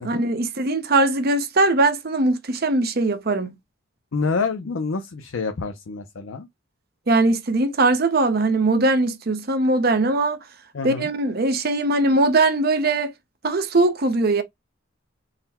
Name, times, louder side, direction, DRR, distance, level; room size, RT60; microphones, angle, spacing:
voice 1, 0.0-3.6 7.1-10.4 10.8-13.1 13.4-14.4, right 2 dB, 50° right, 0.7 m, -20 dB
voice 2, 4.1-6.5 10.7-11.1, left 4 dB, 75° left, 0.5 m, -27 dB
3.9 x 2.1 x 4.1 m
head